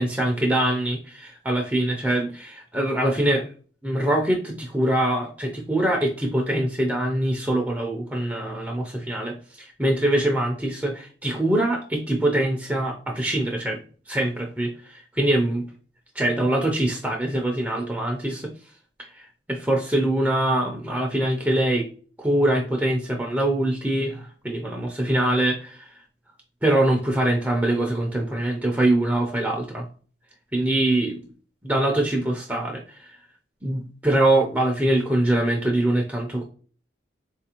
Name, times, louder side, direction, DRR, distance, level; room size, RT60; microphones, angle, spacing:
voice 1, 0.0-3.5 3.8-13.8 14.1-15.7 16.1-18.5 19.0-21.9 22.2-25.9 26.6-29.9 30.5-31.2 31.6-33.2 33.6-36.4, right 1 dB, 10° right, 1 dB, 0.4 m, -23 dB
3.9 x 2.4 x 2.8 m, 0.41 s
head